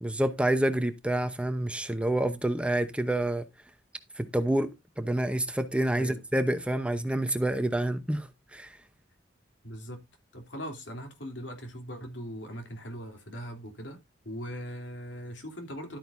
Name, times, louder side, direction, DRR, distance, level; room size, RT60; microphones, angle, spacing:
voice 1, 0.0-3.5 4.2-8.8, right 1 dB, 5° right, 0.7 m, -28 dB
voice 2, 9.6-10.0 10.3-14.0 14.2-16.0, equal, 75° left, 3.1 m, -40 dB
12.5 x 9.0 x 2.6 m
head